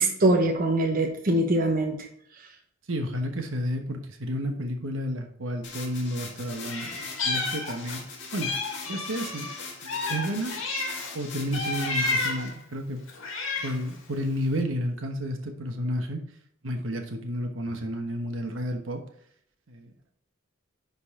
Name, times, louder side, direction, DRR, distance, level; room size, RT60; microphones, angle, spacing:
voice 1, 0.0-2.1, right 2 dB, 45° right, 2 dB, 0.9 m, -23 dB
voice 2, 2.9-8.0 8.3-8.5 8.9-9.5 9.8-10.5 11.1-13.0 13.6-16.2 16.6-19.0 19.7-20.1, equal, 75° right, 4 dB, 1.2 m, -31 dB
sound 1, 5.6-12.5, left 4 dB, 60° left, 2.1 m, -41 dB
Meow, 6.6-8.0 8.4-11.1 11.5-12.5 13.1-13.9, left 3 dB, 75° left, 1.9 m, -31 dB
10.0 x 4.0 x 3.7 m, 0.66 s
head